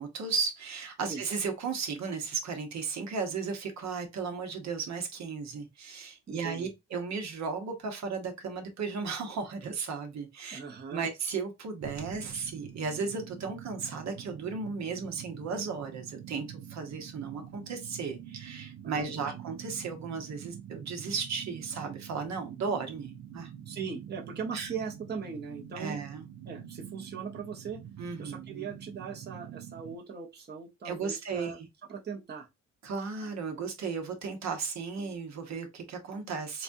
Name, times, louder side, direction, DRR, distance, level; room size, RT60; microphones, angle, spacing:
voice 1, 0.0-10.6 10.9-23.5 24.5-24.7 25.7-26.2 28.0-28.6 30.8-31.7 32.8-36.6, right 5 dB, 65° right, 1.1 m, -35 dB
voice 2, 6.3-6.7 10.5-11.1 18.8-19.4 23.7-26.0 26.4-27.8 28.2-31.6 31.9-32.5, right 5 dB, 35° right, 0.9 m, -39 dB
sound 1, 11.8-30.0, right 10 dB, 80° right, 0.6 m, -46 dB
4.0 x 2.3 x 2.6 m
cardioid pair, 90°, 30 cm